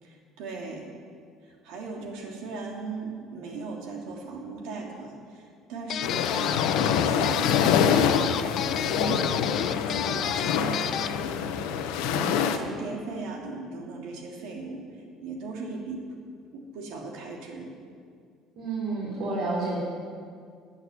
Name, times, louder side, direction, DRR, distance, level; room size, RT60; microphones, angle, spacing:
voice 1, 0.0-0.9 1.4-8.2 8.7-9.2 9.6-14.8 15.2-16.0 16.5-17.7, right 3 dB, 70° right, 0 dB, 2.9 m, -38 dB
sound 1, 5.9-11.2, left 9 dB, 35° left, 0.5 m, -31 dB
sound 2, 6.0-12.6, left 7 dB, 85° left, 1.2 m, -25 dB
voice 2, 18.6-19.8, right 3 dB, 50° right, -8 dB, 4.8 m, -30 dB
15.0 x 9.2 x 9.8 m, 2.2 s
cardioid pair, 175°, 0 cm